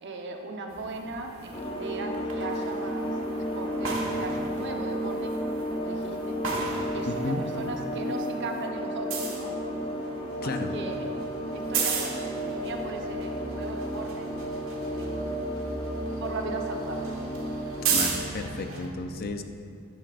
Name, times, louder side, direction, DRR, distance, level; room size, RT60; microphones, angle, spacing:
voice 1, 0.0-5.3 5.7-6.4 6.9-9.6 10.4-11.0 11.5-14.3 14.9-15.5 16.2-17.1, right 2 dB, 55° right, 2 dB, 1.0 m, -38 dB
sound 1, 0.7-7.7 8.0-18.9, right 5 dB, 75° right, 1.5 m, -36 dB
sound 2, 1.5-18.2, equal, 25° left, 1.1 m, -33 dB
voice 2, 7.1-7.4 10.4-10.7 17.9-19.4, left 2 dB, 45° left, 7 dB, 0.6 m, -32 dB
12.5 x 10.5 x 2.5 m, 2.4 s
head